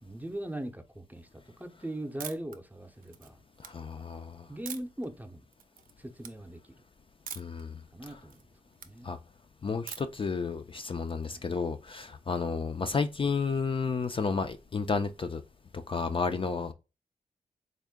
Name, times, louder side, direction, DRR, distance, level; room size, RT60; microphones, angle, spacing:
voice 1, 0.0-3.4 4.5-5.5 6.0-6.6 7.9-8.4 8.8-9.1 11.3-11.4 16.3-16.4, right 1 dB, 10° right, 0.6 m, -40 dB
sound 1, 2.2-2.6 3.0-3.7 4.7-5.1 5.5-5.9 6.2-6.3 7.3-7.6 8.0-8.9 9.9-10.2, right 8 dB, 75° right, 0.4 m, -43 dB
voice 2, 3.6-4.5 7.4-7.8 8.1-8.2 9.0-9.2 9.6-15.4 15.9-16.7, left 4 dB, 40° left, 0.4 m, -32 dB
3.6 x 2.1 x 3.5 m
cardioid pair, 50°, 14 cm